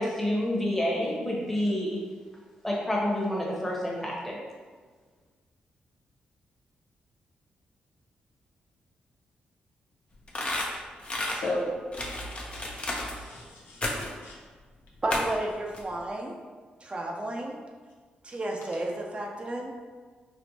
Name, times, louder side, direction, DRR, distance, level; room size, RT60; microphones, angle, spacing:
voice 1, 0.0-2.0 2.6-4.4, left 1 dB, 5° left, -4 dB, 1.1 m, -28 dB
sound 1, 10.3-11.4 11.9-13.1 13.8-14.2 15.1-15.4 15.7-15.8, left 1 dB, 35° left, 0.7 m, -32 dB
voice 2, 11.3-11.8 12.4-12.6 13.1-14.3, left 1 dB, 90° left, -4 dB, 0.7 m, -35 dB
voice 3, 15.0-16.3 16.8-17.6 18.2-19.7, right 1 dB, 35° right, 0 dB, 0.6 m, -32 dB
4.3 x 2.1 x 2.9 m, 1.5 s
supercardioid pair, 55°, 3 cm